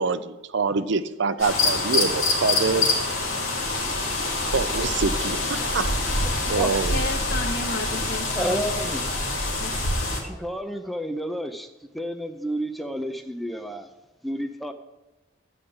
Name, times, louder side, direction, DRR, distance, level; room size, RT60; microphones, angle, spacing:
voice 1, 0.0-2.8 4.4-5.4 5.7-5.9 6.5-7.0, right 4 dB, 60° right, 12 dB, 0.6 m, -25 dB
sound 1, 1.4-10.2, left 2 dB, 90° left, 2.5 m, -25 dB
voice 2, 6.4-6.7 8.3-9.0 10.2-11.7 11.9-13.9 14.2-14.7, equal, ahead, 6 dB, 0.5 m, -30 dB
voice 3, 6.9-8.9 9.6-10.0, left 2 dB, 50° left, 6 dB, 0.9 m, -33 dB
12.5 x 5.1 x 8.8 m, 1.0 s
head